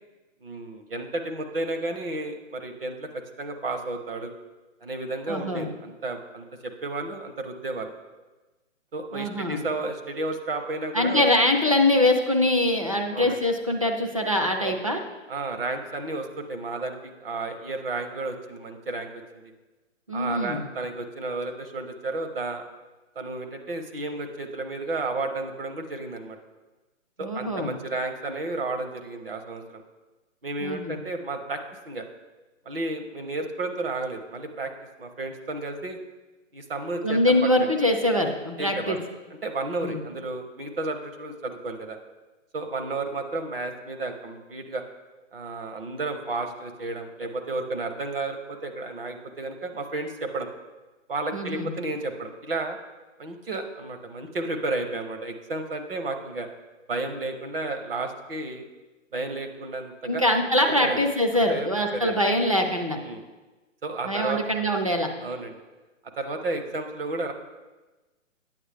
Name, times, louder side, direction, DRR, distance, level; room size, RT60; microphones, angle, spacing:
voice 1, 0.4-3.1 3.4-4.3 4.8-7.9 8.9-11.3 12.0-12.1 13.1-13.4 14.6-14.7 15.3-19.4 20.1-22.6 23.2-26.4 27.2-29.8 30.4-31.6 31.9-32.1 32.7-34.7 35.0-36.0 36.5-37.7 38.6-39.0 39.4-42.0 42.5-44.8 45.3-50.5 51.1-52.8 53.2-56.5 56.9-58.7 59.1-60.2 60.8-61.0 61.3-62.2 63.0-63.2 63.8-64.4 65.2-65.5 66.2-67.3, right 2 dB, 50° right, 6 dB, 0.8 m, -32 dB
voice 2, 5.3-5.7 9.1-9.6 10.9-15.0 20.1-20.6 27.2-27.7 30.6-31.0 37.0-39.0 39.8-40.0 51.3-51.7 60.0-63.0 64.0-65.1, left 1 dB, 30° right, 3 dB, 0.4 m, -23 dB
8.8 x 7.7 x 3.3 m, 1.2 s
hypercardioid pair, 175°, 38 cm